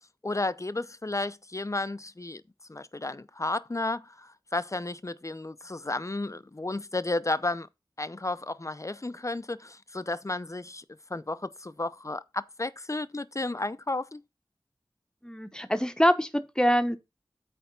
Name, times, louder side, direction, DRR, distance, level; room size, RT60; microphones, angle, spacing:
voice 1, 0.2-2.4 2.7-7.7 8.0-10.8 11.1-14.2, left 2 dB, 35° left, 0.6 m, -33 dB
voice 2, 15.2-17.0, equal, 10° left, 1.0 m, -24 dB
8.7 x 3.5 x 6.7 m
wide cardioid pair, 50°, 9 cm